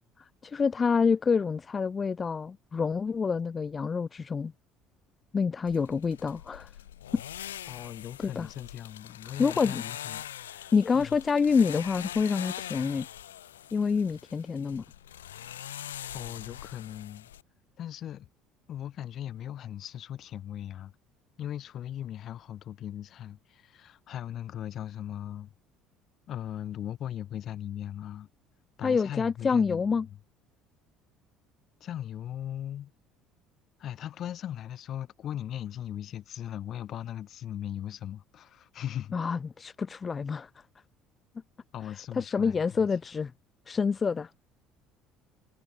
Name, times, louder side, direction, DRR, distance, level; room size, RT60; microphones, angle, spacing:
voice 1, 0.4-4.5 5.3-6.7 7.1-7.2 8.2-8.5 9.4-9.8 10.7-13.1 13.7-14.8 28.8-30.1 39.1-40.5 42.1-43.3 43.7-44.3, left 5 dB, 35° left, 0.6 m, -27 dB
sound 1, 5.7-17.4, left 11 dB, 90° left, 2.9 m, -43 dB
voice 2, 7.7-11.2 16.1-17.3 17.8-18.3 18.7-20.9 21.4-25.5 26.3-28.3 28.8-29.9 31.8-32.9 33.8-39.2 41.7-42.9, left 11 dB, 55° left, 3.5 m, -39 dB
hypercardioid pair, 65°, 0 cm